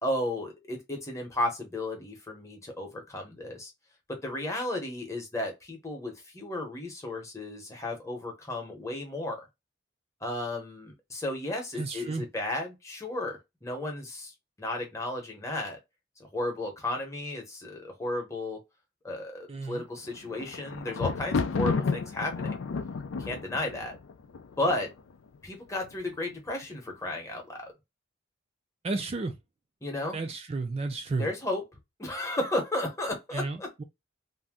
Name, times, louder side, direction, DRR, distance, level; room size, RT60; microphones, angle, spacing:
voice 1, 0.0-3.7 4.1-9.5 10.2-15.8 16.2-18.6 19.0-22.5 23.2-24.0 24.6-24.9 25.4-27.7 29.8-30.2 31.2-31.6 32.0-33.7, left 1 dB, 15° left, 0.9 m, -33 dB
voice 2, 11.8-12.3 19.5-19.8 28.8-29.4 30.1-31.3 33.3-33.8, right 3 dB, 30° right, 0.3 m, -32 dB
Thunder, 20.0-25.1 25.8-26.3 26.6-26.7, left 4 dB, 90° left, 0.4 m, -32 dB
2.6 x 2.2 x 3.5 m
head